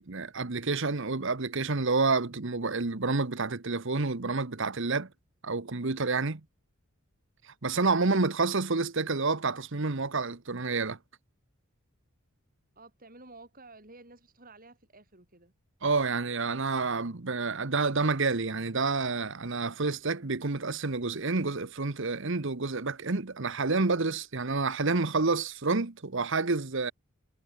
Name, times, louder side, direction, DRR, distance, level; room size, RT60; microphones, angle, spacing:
voice 1, 0.0-5.1 5.4-6.4 7.4-11.0 15.8-26.9, right 3 dB, 60° right, 1.2 m, -29 dB
voice 2, 12.7-15.5, right 2 dB, 40° right, 6.4 m, -52 dB
head